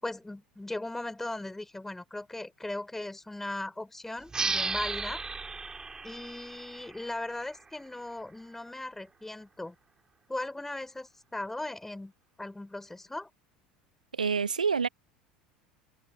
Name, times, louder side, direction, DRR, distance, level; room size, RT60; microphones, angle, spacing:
voice 1, 0.0-5.2 6.0-9.7 10.3-12.1 12.4-13.3, left 2 dB, 5° left, 4.9 m, -38 dB
sound 1, 4.3-7.6, right 4 dB, 15° right, 7.7 m, -34 dB
voice 2, 14.1-14.9, right 5 dB, 80° right, 2.2 m, -27 dB
figure-of-eight pair, 70°, 4 cm